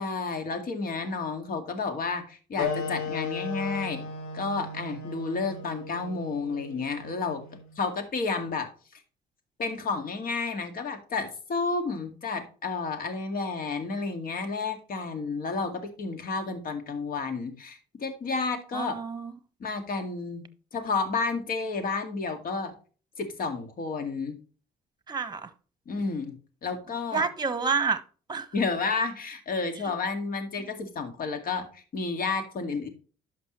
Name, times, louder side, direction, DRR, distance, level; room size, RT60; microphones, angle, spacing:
voice 1, 0.0-4.1 4.3-7.4 7.8-8.7 9.6-19.0 19.6-20.4 20.7-22.7 23.2-24.4 25.9-27.2 28.5-32.9, left 4 dB, 55° left, 2.1 m, -31 dB
sound 1, 2.6-7.7, left 4 dB, 90° left, 2.4 m, -36 dB
voice 2, 18.7-19.3 25.1-25.5 27.1-28.0 28.3-28.5, right 5 dB, 25° right, 1.2 m, -28 dB
11.5 x 6.1 x 3.1 m
supercardioid pair, 65°, 18 cm